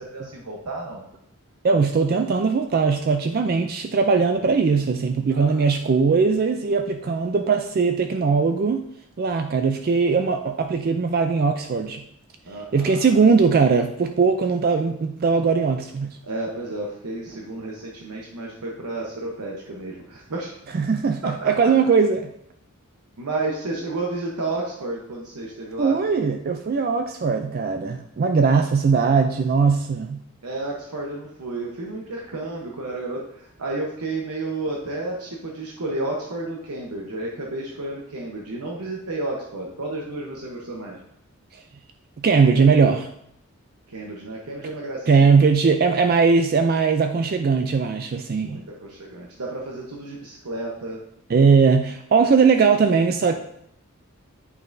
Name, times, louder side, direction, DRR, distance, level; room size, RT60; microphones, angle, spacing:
voice 1, 0.1-1.0 5.3-5.6 12.4-13.1 16.2-20.5 21.2-21.7 23.2-26.0 30.4-41.0 43.9-45.3 48.4-51.0, right 2 dB, 90° right, -1 dB, 1.0 m, -31 dB
voice 2, 1.6-8.8 9.2-12.0 12.7-16.2 20.7-22.2 25.8-30.2 41.5-41.6 42.2-43.1 45.1-48.6 51.3-53.4, right 5 dB, 40° right, 6 dB, 0.3 m, -20 dB
8.8 x 5.5 x 2.6 m, 0.74 s
head